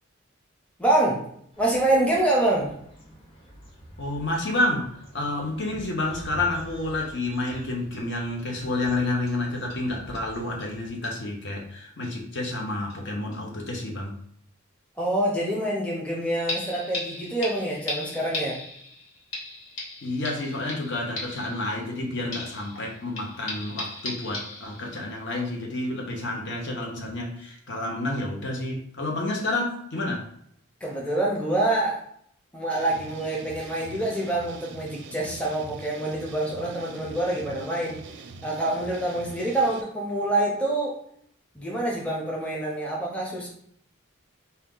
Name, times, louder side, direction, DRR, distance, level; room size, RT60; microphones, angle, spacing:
voice 1, 0.8-1.2 1.6-2.7 15.0-18.6 30.8-32.1 32.5-38.0 38.4-41.0 41.5-43.5, right 1 dB, 5° left, -3 dB, 0.6 m, -26 dB
sound 1, 1.5-10.9, equal, 25° left, 1.0 m, -46 dB
voice 2, 4.0-4.9 5.1-14.2 20.0-30.3, left 2 dB, 55° left, 0 dB, 1.0 m, -29 dB
sound 2, 7.0-7.1 7.5-7.6 7.9-8.0 8.4-8.5 9.3-9.4 9.7-9.9 10.1-10.3 10.6-10.7 11.0-11.2 12.0-12.1 12.5-13.0 13.3-13.4 13.8-13.9 16.5-22.0 22.3-25.1 25.5-25.6, left 2 dB, 90° left, 1.2 m, -37 dB
sound 3, 32.7-39.8, right 4 dB, 55° right, 0.4 m, -43 dB
4.1 x 2.3 x 3.8 m, 0.68 s
head